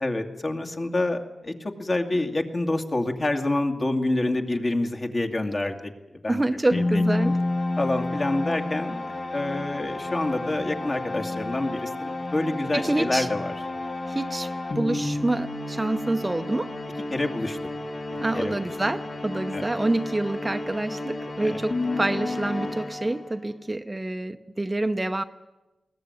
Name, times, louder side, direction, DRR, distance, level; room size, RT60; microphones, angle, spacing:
voice 1, 0.0-6.4 6.7-7.3 7.8-13.5 17.1-17.6 18.3-18.6 19.5-19.6 21.4-21.6, left 2 dB, 40° left, 4 dB, 2.3 m, -27 dB
voice 2, 6.3-7.4 12.7-13.3 14.1-16.7 18.2-25.2, right 2 dB, 20° right, 8 dB, 0.8 m, -27 dB
sound 1, 6.7-23.5, left 2 dB, 65° left, 3.4 m, -31 dB
21.5 x 17.5 x 9.6 m, 1.1 s
wide cardioid pair, 75°, 0 cm